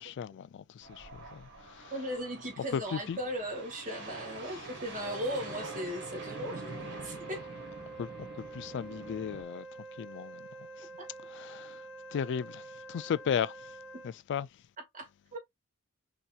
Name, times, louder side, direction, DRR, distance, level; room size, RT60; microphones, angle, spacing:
voice 1, 0.0-1.9 2.7-3.2 8.0-8.1 8.5-9.7 10.0-10.5 11.3-11.8 12.1-13.5 14.0-14.5, left 7 dB, 55° left, 0.3 m, -35 dB
sound 1, 0.8-9.4, right 3 dB, 55° right, 2.1 m, -45 dB
voice 2, 1.9-6.7 7.0-7.4 11.0-11.1 14.9-15.4, equal, 35° right, 1.7 m, -37 dB
Wind instrument woodwind instrument, 5.0-14.2, right 3 dB, ahead, 1.6 m, -47 dB
5.5 x 2.9 x 2.3 m
head